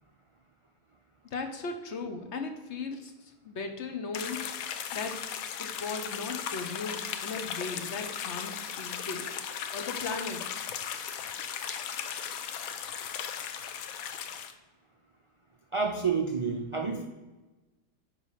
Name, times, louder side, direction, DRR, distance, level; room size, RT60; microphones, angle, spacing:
voice 1, 1.3-3.1 3.4-4.6 4.9-5.1 5.6-9.3 9.7-10.6, left 4 dB, 60° left, 6 dB, 1.1 m, -37 dB
sound 1, 4.1-14.5, left 8 dB, 85° left, 1.1 m, -37 dB
voice 2, 15.7-17.0, right 5 dB, 45° right, 2 dB, 0.4 m, -29 dB
9.4 x 3.2 x 5.6 m, 1.2 s
omnidirectional pair, 1.4 m